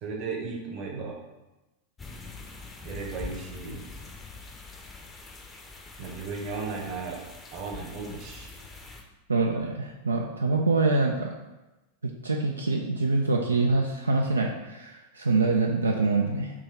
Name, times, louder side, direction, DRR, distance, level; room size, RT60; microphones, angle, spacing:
voice 1, 0.0-1.2 2.8-3.9 6.0-8.5, right 4 dB, 40° right, 1 dB, 0.9 m, -35 dB
sound 1, 2.0-9.0, left 3 dB, 15° left, 0.6 m, -43 dB
voice 2, 9.3-11.3 12.2-16.5, right 3 dB, 75° right, 1 dB, 0.3 m, -25 dB
3.7 x 2.9 x 4.4 m, 1.1 s
figure-of-eight pair, 90°, 0 cm